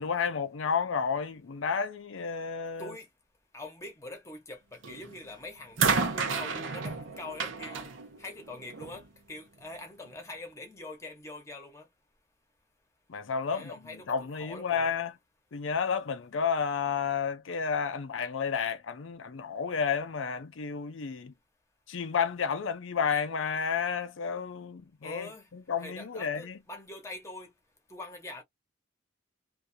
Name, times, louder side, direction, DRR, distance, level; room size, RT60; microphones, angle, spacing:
voice 1, 0.0-2.9 13.1-13.7 14.1-15.1 15.5-21.3 21.9-25.3 25.7-26.5, left 6 dB, 90° left, 0.5 m, -31 dB
voice 2, 3.5-7.9 8.2-11.9 13.5-14.9 25.0-25.5 25.8-27.5 27.9-28.4, left 2 dB, 15° left, 0.9 m, -44 dB
sound 1, 4.8-5.2 5.8-9.0 10.1-10.2, right 5 dB, 80° right, 0.7 m, -31 dB
2.6 x 2.4 x 2.6 m
head